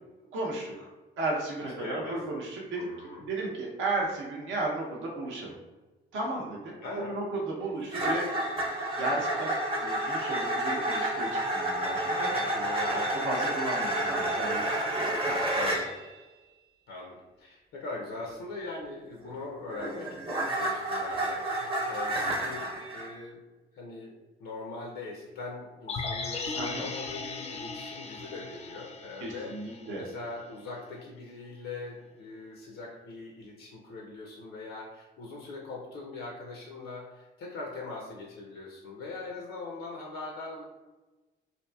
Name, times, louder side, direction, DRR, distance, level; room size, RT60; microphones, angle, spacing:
voice 1, 0.3-0.9 1.2-2.8 3.3-5.6 6.1-8.3 9.0-12.3 12.9-13.0 13.2-15.7 26.6-26.9 29.2-30.0, right 2 dB, 80° right, -2 dB, 0.6 m, -34 dB
voice 2, 1.6-2.3 2.8-3.2 6.8-7.2 12.3-13.2 15.6-15.9 16.9-23.4 23.7-40.6, left 3 dB, 90° left, -2 dB, 0.5 m, -41 dB
sound 1, 7.9-15.9 19.3-23.1, right 1 dB, 30° right, 0.7 m, -30 dB
sound 2, 25.9-30.1 30.4-30.5, left 4 dB, 35° left, 0.4 m, -37 dB
2.8 x 2.5 x 2.2 m, 1.2 s
cardioid pair, 90°, 20 cm